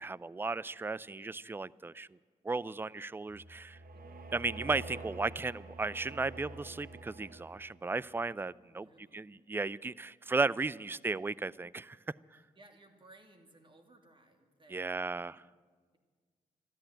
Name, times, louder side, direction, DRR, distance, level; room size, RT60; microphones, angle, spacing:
voice 1, 0.0-2.1 2.4-3.8 4.3-8.9 9.1-12.0 12.3-12.4 14.7-15.4, right 3 dB, 15° right, 22 dB, 0.4 m, -35 dB
sound 1, 3.3-7.9, right 2 dB, 65° right, 1.3 m, -47 dB
voice 2, 8.7-9.4 12.6-15.1, right 2 dB, 30° right, 4 dB, 2.5 m, -60 dB
13.0 x 11.5 x 9.0 m, 1.5 s
supercardioid pair, 40°, 16 cm